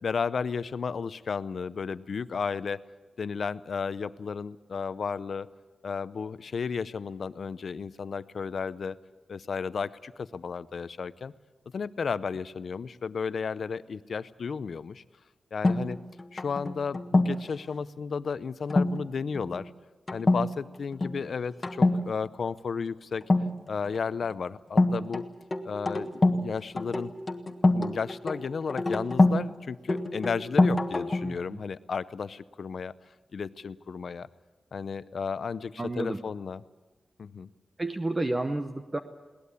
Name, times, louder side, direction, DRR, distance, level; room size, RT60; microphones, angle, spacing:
voice 1, 0.0-2.8 3.2-5.5 5.8-9.0 9.3-11.3 11.7-15.0 15.5-16.0 16.3-19.7 20.1-23.3 23.7-25.2 25.6-27.1 27.7-32.9 33.3-34.3 34.7-36.6 37.2-37.5, left 5 dB, 60° left, 15 dB, 0.6 m, -33 dB
sound 1, 15.6-17.5 18.7-19.0 19.3-19.6 20.1-20.5 20.7-21.2 21.6-22.0 23.2-24.0 24.8-26.5 26.8-29.4 29.9-31.3, left 2 dB, 25° left, 1.4 m, -25 dB
voice 2, 31.2-31.6 35.8-36.2 37.8-39.0, right 2 dB, 20° right, 7 dB, 0.9 m, -31 dB
21.5 x 18.5 x 8.3 m, 1.2 s
wide cardioid pair, 125°, 0 cm